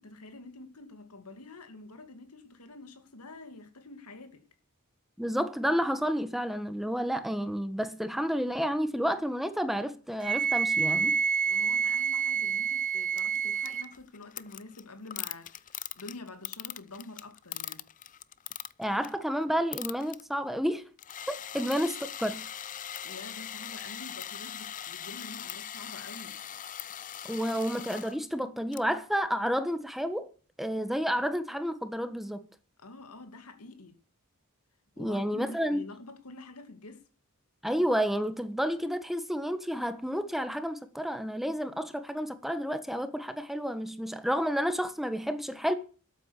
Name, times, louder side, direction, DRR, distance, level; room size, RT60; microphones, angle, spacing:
voice 1, 0.0-4.4 11.4-17.8 21.5-21.7 23.0-26.4 32.8-34.0 35.0-37.0, left 2 dB, 90° left, 2.5 m, -47 dB
voice 2, 5.2-11.2 18.8-20.8 21.3-22.4 27.2-30.3 30.6-32.4 35.0-35.8 37.6-45.7, equal, ahead, 1.3 m, -30 dB
Wind instrument woodwind instrument, 10.2-13.9, right 6 dB, 40° right, 0.7 m, -28 dB
sound 1, 13.2-19.2 19.5-20.2 21.0-28.2 28.7-28.8, left 10 dB, 35° left, 0.6 m, -41 dB
12.5 x 8.8 x 8.3 m
head